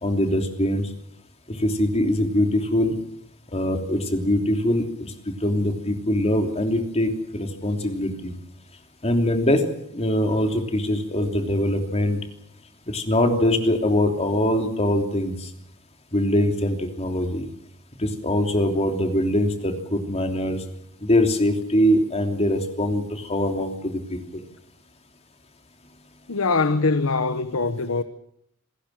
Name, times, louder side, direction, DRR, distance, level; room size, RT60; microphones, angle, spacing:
voice 1, 0.0-0.9 1.6-3.0 3.5-8.3 9.0-9.6 9.9-12.2 12.9-15.4 16.1-17.5 18.0-20.6 21.0-24.2, left 1 dB, 30° left, 3.1 m, -23 dB
voice 2, 26.3-28.0, left 3 dB, 85° left, 1.1 m, -22 dB
28.0 x 16.5 x 7.5 m
head